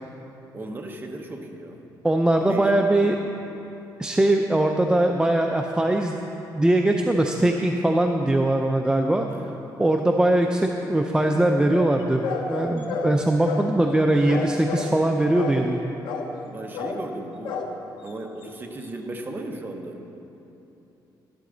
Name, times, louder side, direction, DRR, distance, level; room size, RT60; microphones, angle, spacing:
voice 1, 0.5-1.8 2.5-3.2 9.3-9.6 16.5-17.6 18.0-20.1, right 2 dB, 25° right, 2 dB, 1.0 m, -36 dB
voice 2, 2.0-3.2 4.0-6.2 6.5-9.3 9.8-15.8, right 1 dB, 10° right, 3 dB, 0.4 m, -21 dB
sound 1, 11.7-14.0 14.3-15.0 15.3-15.8 16.0-16.5 16.7-17.1 17.4-17.7 18.1-18.2 18.4-18.5, left 4 dB, 80° left, 1.0 m, -31 dB
12.0 x 11.5 x 3.9 m, 3.0 s
cardioid pair, 140°, 8 cm